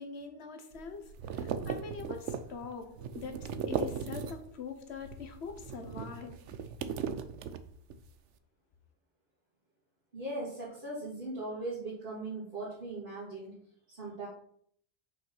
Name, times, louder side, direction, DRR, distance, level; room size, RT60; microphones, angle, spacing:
voice 1, 0.0-6.5, left 5 dB, 65° left, 1.3 m, -44 dB
sound 1, 0.7-4.6 4.9-8.1, right 7 dB, 80° right, 1.0 m, -38 dB
voice 2, 10.1-13.6 13.9-14.3, right 2 dB, 45° right, 2.7 m, -39 dB
6.4 x 5.4 x 5.5 m
omnidirectional pair, 1.2 m